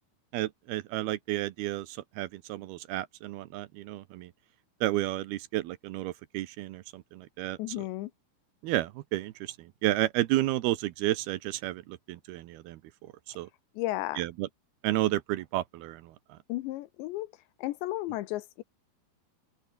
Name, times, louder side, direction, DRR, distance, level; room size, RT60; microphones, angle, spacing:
voice 1, 0.3-4.3 4.8-7.8 8.6-12.8 13.4-13.5 14.2-14.5 14.8-16.1, right 15 dB, 75° right, 2.4 m, -31 dB
voice 2, 7.6-8.1 13.8-14.2 16.5-17.3 17.6-18.6, left 17 dB, 85° left, 3.0 m, -33 dB
open air
omnidirectional pair, 5.3 m